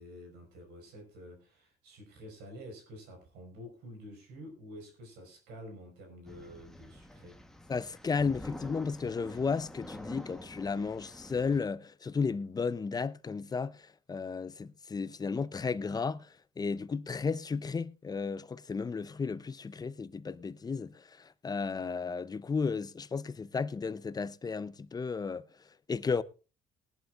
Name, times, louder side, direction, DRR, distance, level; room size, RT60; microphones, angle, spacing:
voice 1, 0.0-7.4, equal, 90° right, 5.3 m, -49 dB
sound 1, 6.2-11.6, left 1 dB, 5° left, 1.2 m, -47 dB
voice 2, 7.7-16.3 16.6-25.4 25.9-26.2, left 5 dB, 25° left, 0.6 m, -34 dB
19.5 x 11.5 x 2.5 m
cardioid pair, 110°, 17 cm